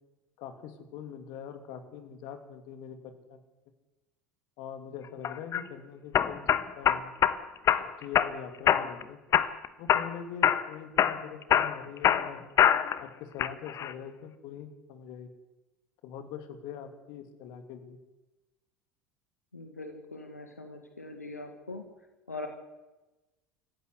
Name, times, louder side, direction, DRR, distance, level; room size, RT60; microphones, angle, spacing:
voice 1, 0.4-3.4 4.6-7.1 8.0-9.2 9.8-12.4 13.0-15.3 16.0-18.0, left 8 dB, 55° left, 9 dB, 2.7 m, -43 dB
sound 1, 5.2-5.6 6.1-7.4 7.7-8.3 8.7-9.0 9.3-10.1 10.4-10.7 11.0-13.0 13.4-13.9, left 9 dB, 40° left, 1.3 m, -24 dB
voice 2, 19.5-21.8 22.3-22.5, left 2 dB, 85° left, 5 dB, 2.0 m, -41 dB
27.5 x 15.0 x 8.1 m, 1.1 s
figure-of-eight pair, 70°, 8 cm